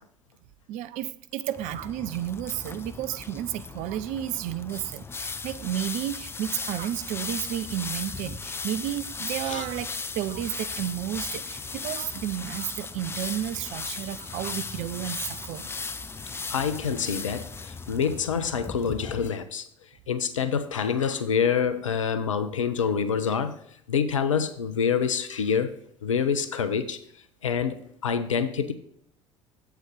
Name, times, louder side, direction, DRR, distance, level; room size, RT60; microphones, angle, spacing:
voice 1, 0.7-9.9 10.1-15.8, right 12 dB, 50° right, 0.4 m, -32 dB
sound 1, 1.5-19.3, left 4 dB, 15° left, 0.5 m, -37 dB
voice 2, 16.5-19.6 20.1-23.6 23.9-25.7 26.0-27.0 27.4-28.7, left 6 dB, 80° left, 0.6 m, -26 dB
7.8 x 4.6 x 5.1 m
figure-of-eight pair, 65°, 16 cm